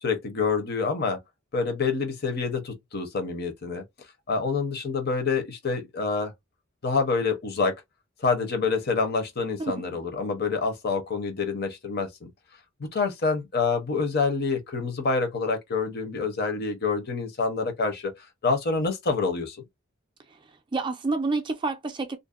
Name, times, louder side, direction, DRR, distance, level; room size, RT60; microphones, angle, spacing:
voice 1, 0.0-1.2 1.5-3.8 4.3-6.3 6.8-7.7 8.2-12.3 12.8-18.1 18.4-19.6, left 4 dB, 50° left, 0.7 m, -27 dB
voice 2, 9.6-10.0 20.7-22.2, right 3 dB, 25° right, 0.4 m, -28 dB
2.5 x 2.0 x 2.3 m
head